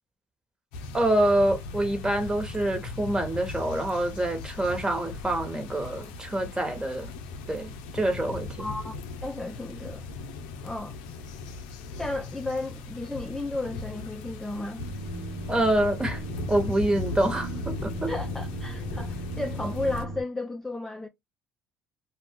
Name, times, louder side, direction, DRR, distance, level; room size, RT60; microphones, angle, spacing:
sound 1, 0.7-20.1, left 3 dB, 85° left, 0.5 m, -38 dB
voice 1, 0.9-7.1 7.5-8.7 15.5-16.2 16.5-18.1, right 1 dB, 15° right, 1.2 m, -26 dB
voice 2, 8.6-8.9 9.2-10.1 10.6-11.0 11.9-14.8 18.1-21.1, left 2 dB, 10° left, 0.5 m, -33 dB
sound 2, 14.8-20.2, right 1 dB, 85° right, 0.8 m, -37 dB
2.3 x 2.3 x 3.6 m
supercardioid pair, 70°, 5 cm